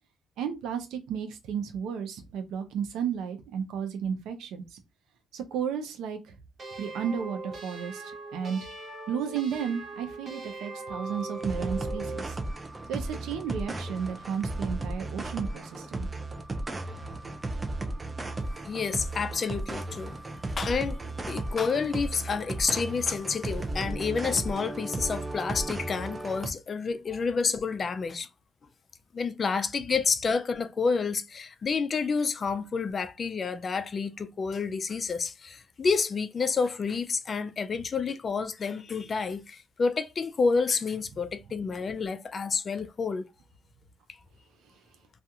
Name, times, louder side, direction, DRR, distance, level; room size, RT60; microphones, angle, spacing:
voice 1, 0.4-4.8 5.3-6.4 6.8-8.7 9.1-12.4 12.9-16.1 17.0-17.1, right 7 dB, 85° right, 0.6 m, -33 dB
sound 1, 6.6-12.3, right 2 dB, 45° right, 0.8 m, -40 dB
sound 2, 10.9-26.5, right 2 dB, 25° right, 0.4 m, -35 dB
voice 2, 18.7-20.2 20.6-21.0 21.3-28.3 29.1-43.3, left 5 dB, 40° left, 0.3 m, -29 dB
2.4 x 2.3 x 2.7 m
cardioid pair, 90°, 0 cm